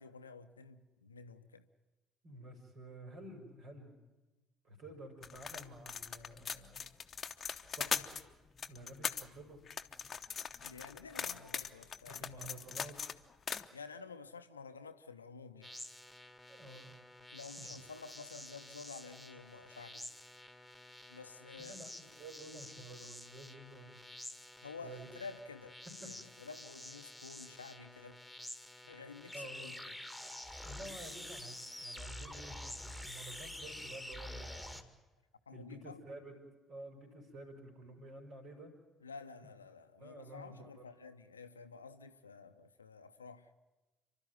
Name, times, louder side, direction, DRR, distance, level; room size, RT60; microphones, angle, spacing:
voice 1, 0.0-1.7 10.6-12.5 13.7-15.7 17.3-20.1 21.1-21.8 24.6-25.8 26.0-28.2 28.8-29.9 35.5-36.0 39.0-43.5, left 4 dB, 85° left, 0.7 m, -51 dB
voice 2, 2.2-3.9 4.6-6.8 7.6-8.1 8.7-9.6 9.9-10.1 12.1-13.0 16.5-17.0 17.6-17.8 21.6-24.0 24.8-25.1 25.9-26.4 29.3-29.7 30.6-34.8 35.5-36.4 36.7-38.8 39.4-39.5 40.0-40.8, right 1 dB, 55° right, 5.4 m, -51 dB
sound 1, 5.2-8.2 8.6-9.2 9.7-13.1 13.5-13.7, left 6 dB, 40° left, 0.9 m, -40 dB
sound 2, 15.6-34.8, left 1 dB, ahead, 2.2 m, -49 dB
29.0 x 12.5 x 9.4 m
figure-of-eight pair, 50°, 0 cm